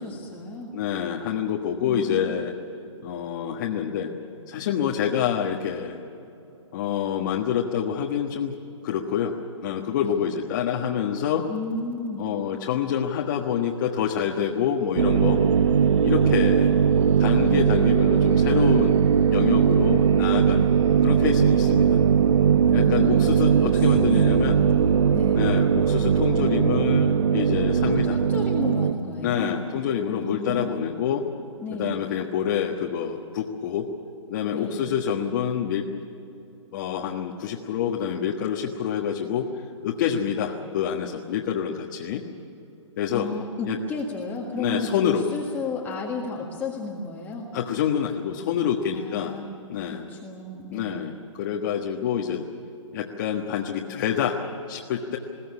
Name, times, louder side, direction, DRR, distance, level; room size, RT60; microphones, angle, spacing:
voice 1, 0.0-0.7 1.8-2.4 10.0-10.1 11.5-12.3 22.7-25.4 27.9-29.6 30.1-30.8 31.6-32.0 34.5-34.9 43.1-47.5 48.9-49.5 49.9-51.1, left 3 dB, 10° left, -3 dB, 1.7 m, -33 dB
voice 2, 0.7-2.5 3.0-4.1 4.5-6.0 6.7-8.5 8.8-9.3 9.6-11.5 12.2-15.4 16.0-16.7 17.2-19.0 19.3-20.6 21.0-22.0 22.7-24.6 25.4-28.2 29.2-31.3 31.7-33.9 34.3-35.9 36.7-42.2 43.0-43.3 43.6-43.8 44.6-45.2 47.5-49.3 49.7-50.0 50.7-52.5 52.9-54.4 54.7-55.2, left 8 dB, 40° left, 0 dB, 1.5 m, -27 dB
sound 1, 14.9-28.9, right 7 dB, 70° right, 0.9 m, -19 dB
21.5 x 17.0 x 9.8 m, 2.9 s
hypercardioid pair, 150°, 16 cm